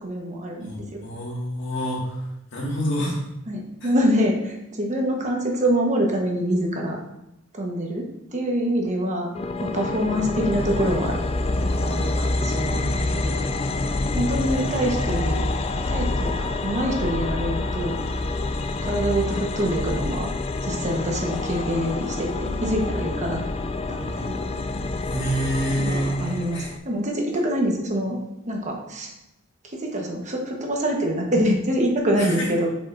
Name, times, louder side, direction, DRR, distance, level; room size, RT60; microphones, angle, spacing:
voice 1, 0.0-1.0 3.5-7.0 7.5-8.0 8.3-9.3 9.6-11.2 11.8-12.9 13.2-13.4 14.1-15.4 15.9-18.0 18.8-20.3 20.6-23.4 23.9-24.4 25.8-28.2 28.5-29.1 29.6-32.7, equal, 35° right, 0 dB, 1.2 m, -25 dB
voice 2, 1.0-3.2 3.8-3.9 12.4-13.4 14.5-14.7 25.0-26.7 32.2-32.5, equal, 65° left, -3 dB, 2.0 m, -28 dB
sound 1, 9.3-26.8, left 2 dB, 30° left, 0.4 m, -27 dB
7.5 x 5.2 x 2.6 m, 0.86 s
head